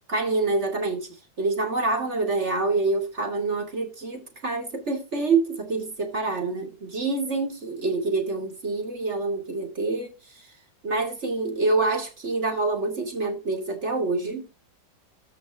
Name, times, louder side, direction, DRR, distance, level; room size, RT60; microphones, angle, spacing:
voice 1, 0.1-1.1 1.4-10.5 10.8-14.5, right 3 dB, 35° right, 2.8 m, -26 dB
13.5 x 6.5 x 3.6 m
omnidirectional pair, 2.0 m